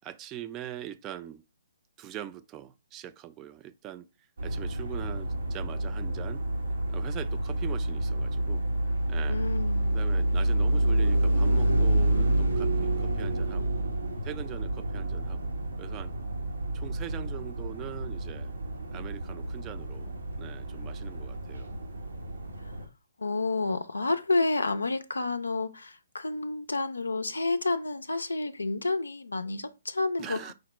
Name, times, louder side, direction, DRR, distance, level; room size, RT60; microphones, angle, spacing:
voice 1, 0.0-1.4 2.0-4.1 4.4-6.4 6.9-8.6 9.1-9.4 9.9-13.7 14.2-15.4 15.8-16.1 16.7-18.5 18.9-21.7 30.2-30.5, right 11 dB, 25° right, 0.4 m, -42 dB
sound 1, 4.4-22.8, right 1 dB, 80° right, 1.0 m, -29 dB
voice 2, 9.3-10.0 23.2-30.4, left 3 dB, 85° left, 0.4 m, -30 dB
5.0 x 2.1 x 4.2 m
figure-of-eight pair, 135°, 0 cm